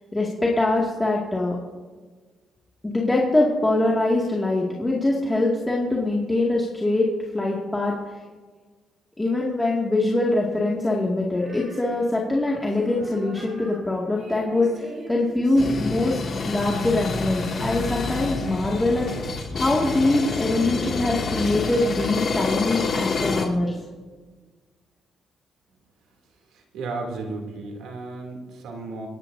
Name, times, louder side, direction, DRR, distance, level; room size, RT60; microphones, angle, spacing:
voice 1, 0.1-1.6 2.8-7.1 7.3-8.2 9.2-16.2 16.5-19.1 19.5-23.8, left 2 dB, 15° left, -3 dB, 2.2 m, -23 dB
Female singing, 11.3-18.7, right 2 dB, 55° right, 5.1 m, -43 dB
sound 1, 15.6-23.4, left 3 dB, 50° left, 2.4 m, -28 dB
voice 2, 26.5-29.1, right 3 dB, 80° right, 1 dB, 2.9 m, -34 dB
27.5 x 10.5 x 2.7 m, 1.4 s
cardioid pair, 90°, 0 cm